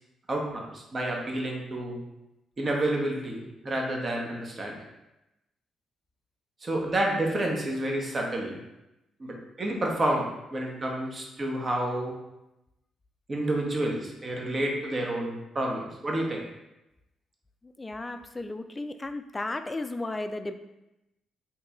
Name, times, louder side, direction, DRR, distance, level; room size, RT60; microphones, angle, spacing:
voice 1, 0.3-2.0 2.6-4.7 6.6-8.6 9.2-12.1 13.3-16.4, right 1 dB, 40° right, -1 dB, 0.9 m, -29 dB
voice 2, 17.6-20.5, left 2 dB, 25° left, 8 dB, 0.3 m, -34 dB
2.9 x 2.9 x 3.6 m, 0.92 s
hypercardioid pair, 40°, 0 cm